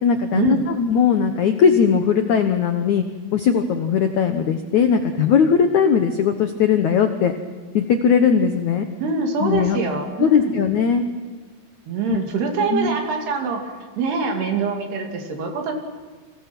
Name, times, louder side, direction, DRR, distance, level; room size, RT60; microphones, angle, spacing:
voice 1, 0.0-3.0 3.3-7.3 7.7-8.9 9.4-9.8 10.2-11.0 12.1-12.2 12.7-12.9, left 7 dB, 85° left, 7 dB, 1.7 m, -19 dB
voice 2, 9.0-10.5 11.9-13.7 14.0-15.7, right 4 dB, 65° right, 3 dB, 4.5 m, -24 dB
29.5 x 26.5 x 6.1 m, 1.4 s
omnidirectional pair, 5.2 m